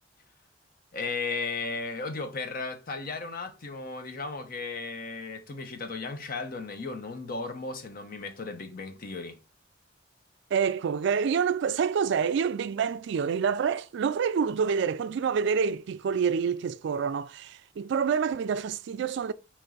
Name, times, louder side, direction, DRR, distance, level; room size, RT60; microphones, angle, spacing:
voice 1, 0.9-9.4, left 4 dB, 50° left, 0.8 m, -35 dB
voice 2, 10.5-19.3, right 6 dB, 65° right, 0.3 m, -27 dB
4.5 x 3.1 x 3.8 m
head